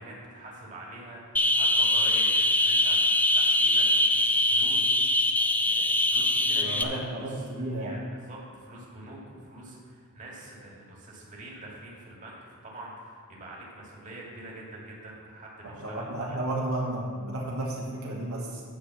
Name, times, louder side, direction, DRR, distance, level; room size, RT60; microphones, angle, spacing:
voice 1, 0.0-5.3 5.6-16.4, right 1 dB, 35° right, -4 dB, 2.2 m, -45 dB
sound 1, 1.4-6.8, left 1 dB, 10° left, 0.4 m, -23 dB
voice 2, 6.6-7.9 15.6-18.6, right 1 dB, 75° right, -4 dB, 1.6 m, -33 dB
9.9 x 5.1 x 7.4 m, 2.1 s
head